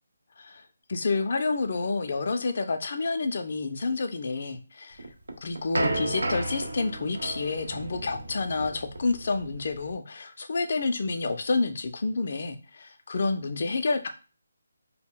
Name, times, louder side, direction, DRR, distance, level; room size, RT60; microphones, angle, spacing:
voice 1, 0.9-5.0 5.4-14.1, left 3 dB, 50° left, 6 dB, 0.4 m, -29 dB
sound 1, 5.0-9.9, right 2 dB, 90° right, 0.5 m, -33 dB
2.2 x 2.1 x 3.6 m, 0.35 s
figure-of-eight pair, 160°, 0 cm